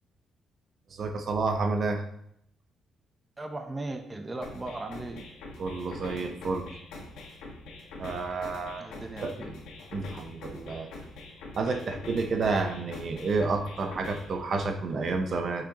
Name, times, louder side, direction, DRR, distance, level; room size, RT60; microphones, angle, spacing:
voice 1, 0.9-2.0 5.6-6.8 8.0-8.9 9.2-9.3 9.9-10.9 11.5-15.7, right 3 dB, 50° right, 5 dB, 0.8 m, -30 dB
voice 2, 3.4-5.2 8.8-9.6, right 2 dB, 20° right, 5 dB, 0.8 m, -37 dB
sound 1, 4.4-14.4, left 2 dB, 85° left, 1.5 m, -44 dB
6.2 x 6.0 x 3.0 m, 0.72 s
cardioid pair, 90°, 0 cm